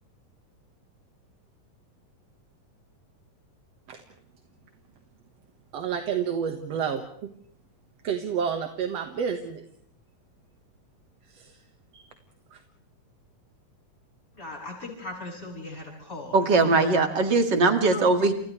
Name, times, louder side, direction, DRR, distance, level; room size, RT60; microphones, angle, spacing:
voice 1, 5.7-7.3 8.0-9.6 11.3-11.6 11.9-12.1 12.5-12.6, right 7 dB, 55° right, 5 dB, 2.3 m, -30 dB
voice 2, 14.4-16.4 17.9-18.0, left 2 dB, 20° left, -1 dB, 8.5 m, -38 dB
voice 3, 16.3-18.3, right 3 dB, 35° right, 6 dB, 2.4 m, -20 dB
29.5 x 29.5 x 3.3 m, 0.65 s
omnidirectional pair, 4.0 m